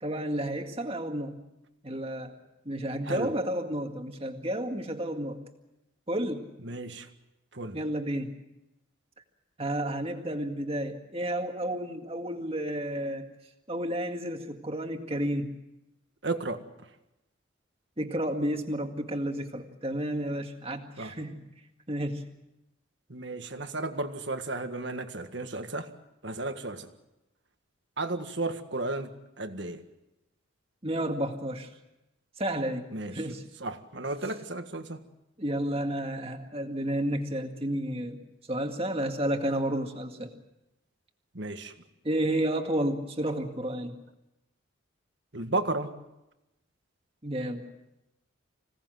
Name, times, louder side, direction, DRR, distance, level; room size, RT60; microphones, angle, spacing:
voice 1, 0.0-1.4 1.8-2.3 2.7-5.4 6.1-6.5 7.7-8.4 9.6-13.3 13.7-15.5 18.0-21.4 21.9-22.3 30.8-31.7 32.4-33.4 35.4-38.2 38.5-40.3 42.0-44.0 47.2-47.7, right 1 dB, 30° right, 4 dB, 2.0 m, -31 dB
voice 2, 6.6-7.1 7.5-7.8 16.2-16.6 21.0-21.2 23.1-25.9 26.2-26.9 28.0-29.8 32.9-33.3 33.6-35.0 41.3-41.7 45.3-45.9, right 2 dB, 60° right, 8 dB, 1.7 m, -33 dB
26.0 x 18.0 x 7.8 m, 0.94 s
head